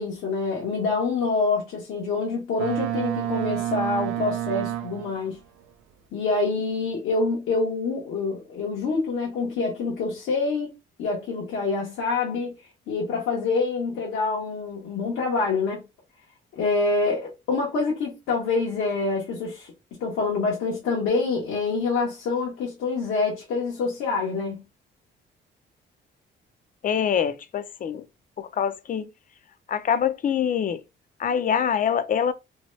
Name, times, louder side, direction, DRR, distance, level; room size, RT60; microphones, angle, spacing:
voice 1, 0.0-5.4 6.1-10.7 11.0-12.5 12.9-15.8 16.5-19.7 20.0-24.6, left 3 dB, 85° left, 0.9 m, -26 dB
Boat Water vehicle, 2.6-5.3, right 13 dB, 85° right, 0.4 m, -29 dB
voice 2, 26.8-28.0 28.4-29.1 29.7-30.8 31.2-32.3, left 8 dB, 45° left, 0.4 m, -24 dB
2.8 x 2.2 x 3.1 m
cardioid pair, 90°, 20 cm